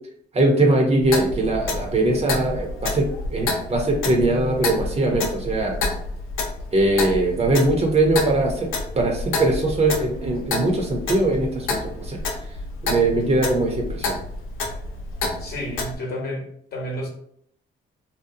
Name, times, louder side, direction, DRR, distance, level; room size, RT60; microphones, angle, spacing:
voice 1, 0.3-3.1 3.3-5.7 6.7-8.7 8.9-12.2 12.8-14.1, right 2 dB, 30° right, 1 dB, 0.7 m, -21 dB
Clock, 1.0-15.9, left 3 dB, 90° left, 0.5 m, -29 dB
voice 2, 15.4-17.1, equal, 50° left, -1 dB, 0.9 m, -31 dB
2.7 x 2.1 x 2.6 m, 0.66 s
cardioid pair, 90°, 20 cm